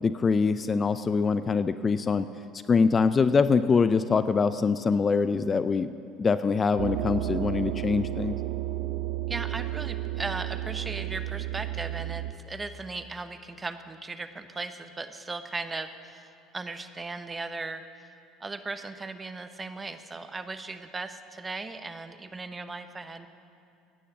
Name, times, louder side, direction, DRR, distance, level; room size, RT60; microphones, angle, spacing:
voice 1, 0.0-2.3 2.7-5.9 6.2-8.4, left 5 dB, 30° left, 13 dB, 0.5 m, -24 dB
sound 1, 6.8-12.3, right 15 dB, 75° right, 0.5 m, -32 dB
voice 2, 9.3-17.8 18.4-23.3, right 3 dB, 20° right, 10 dB, 0.9 m, -37 dB
16.5 x 10.0 x 6.1 m, 2.5 s
hypercardioid pair, 75°, 0 cm